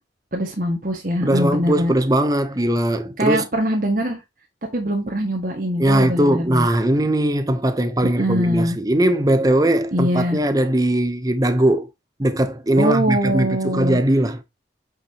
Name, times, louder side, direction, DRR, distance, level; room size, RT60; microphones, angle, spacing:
voice 1, 0.3-1.9 3.2-4.2 4.7-6.7 8.0-8.8 9.9-10.4 12.8-14.0, equal, 45° right, 1.7 m, -22 dB
voice 2, 1.2-3.5 5.8-11.9 12.2-14.4, right 1 dB, 20° right, 0.7 m, -19 dB
8.3 x 5.9 x 2.9 m
head